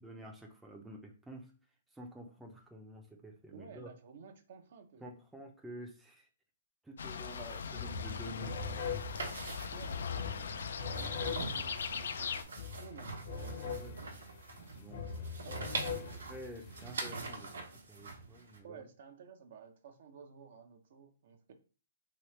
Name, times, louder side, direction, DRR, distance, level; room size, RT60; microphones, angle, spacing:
voice 1, 0.0-1.5 1.9-3.9 5.0-6.3 6.8-8.8 13.6-14.2 14.7-15.0 16.3-18.8, equal, 5° right, 0 dB, 0.5 m, -49 dB
voice 2, 3.5-5.1 9.7-13.2 15.4-15.8 18.6-21.5, right 6 dB, 60° right, 6 dB, 0.7 m, -54 dB
sound 1, 7.0-12.4, left 6 dB, 75° left, 0.3 m, -40 dB
sound 2, 7.3-7.5 7.7-17.0, left 4 dB, 50° left, 0.8 m, -42 dB
sound 3, 9.1-18.6, right 3 dB, 90° right, 1.0 m, -44 dB
3.1 x 3.0 x 3.1 m, 0.36 s
hypercardioid pair, 145°, 0 cm